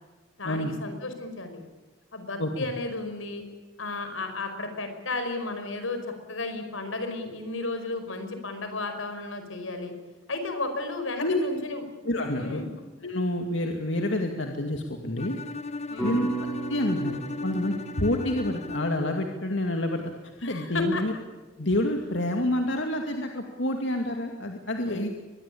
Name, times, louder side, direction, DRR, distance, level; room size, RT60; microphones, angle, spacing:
voice 1, 0.4-1.6 2.1-3.4 3.8-6.0 6.3-9.9 10.3-11.8 12.4-12.7 15.9-16.2 20.4-21.0 24.9-25.1, left 3 dB, 85° left, 7 dB, 5.1 m, -33 dB
voice 2, 12.0-12.6 13.0-15.4 16.0-16.3 16.7-17.1 17.4-20.0 20.4-21.1 21.6-25.1, left 1 dB, 65° left, 3 dB, 2.4 m, -28 dB
Bowed string instrument, 15.2-19.2, left 3 dB, 35° left, 0.9 m, -36 dB
sound 1, 16.0-20.3, right 4 dB, 5° left, 6.6 m, -37 dB
24.0 x 21.0 x 8.6 m, 1.3 s
head